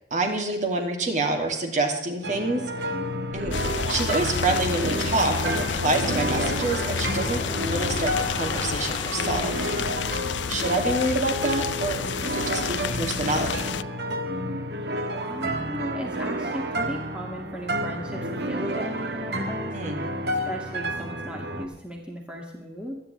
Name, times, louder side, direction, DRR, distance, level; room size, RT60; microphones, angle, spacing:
voice 1, 0.1-2.9 3.3-3.6 3.9-9.7 10.5-13.8 19.7-20.0, right 2 dB, 45° right, 3 dB, 2.4 m, -27 dB
sound 1, 2.2-21.7, right 1 dB, 65° right, 1.4 m, -30 dB
sound 2, 3.3-10.5, left 2 dB, 30° left, 1.9 m, -38 dB
sound 3, 3.5-13.8, left 7 dB, 80° left, 0.4 m, -30 dB
voice 2, 15.2-19.8 20.2-23.0, equal, 5° right, -1 dB, 2.0 m, -36 dB
25.0 x 10.0 x 3.3 m, 0.89 s
head